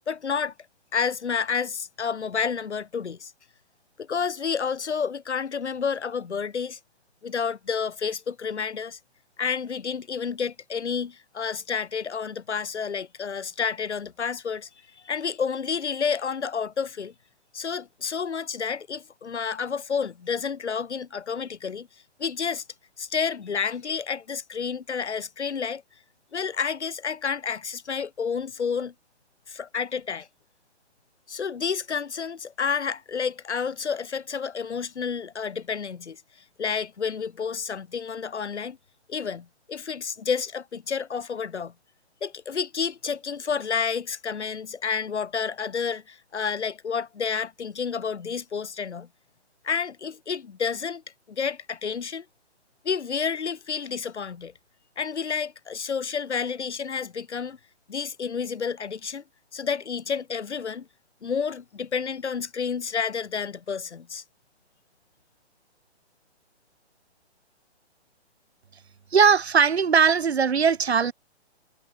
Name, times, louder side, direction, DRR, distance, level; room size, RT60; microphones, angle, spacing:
voice 1, 0.1-0.5 0.9-3.3 4.0-6.8 7.2-9.0 9.4-14.7 15.0-17.1 17.5-21.9 22.2-22.6 23.0-25.8 26.3-28.9 29.5-30.3 31.3-36.2 36.6-38.8 39.1-41.7 42.2-49.1 49.6-51.0 51.3-52.3 52.8-54.5 55.0-57.6 57.9-59.2 59.5-60.9 61.2-64.2, left 6 dB, 80° left, 2.4 m, -30 dB
voice 2, 69.1-71.1, right 6 dB, 70° right, 2.6 m, -19 dB
hypercardioid pair, 175°, 34 cm